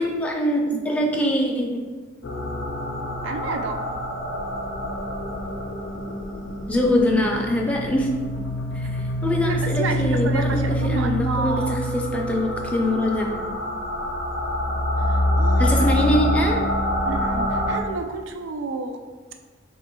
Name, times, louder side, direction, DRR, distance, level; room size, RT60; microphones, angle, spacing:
voice 1, 0.0-1.8 6.7-8.1 8.7-11.6 11.9-13.4 15.6-16.6, left 1 dB, 5° left, -1 dB, 0.4 m, -23 dB
sound 1, 2.2-17.8, equal, 90° left, 0.5 m, -26 dB
voice 2, 3.2-3.8 9.4-11.8 15.0-16.1 17.0-19.0, right 3 dB, 90° right, 6 dB, 0.4 m, -30 dB
3.0 x 2.9 x 4.5 m, 1.4 s
head